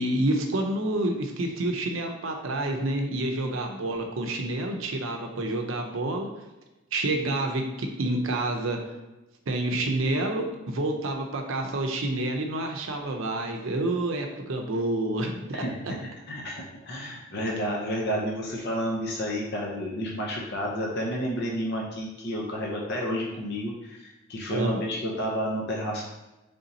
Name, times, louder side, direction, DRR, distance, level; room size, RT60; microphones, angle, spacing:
voice 1, 0.0-6.3 6.9-8.8 9.5-15.9 24.5-24.8, right 1 dB, 70° right, 3 dB, 0.6 m, -28 dB
voice 2, 16.3-26.1, equal, 55° left, -2 dB, 0.6 m, -31 dB
3.5 x 2.7 x 4.0 m, 1.0 s
head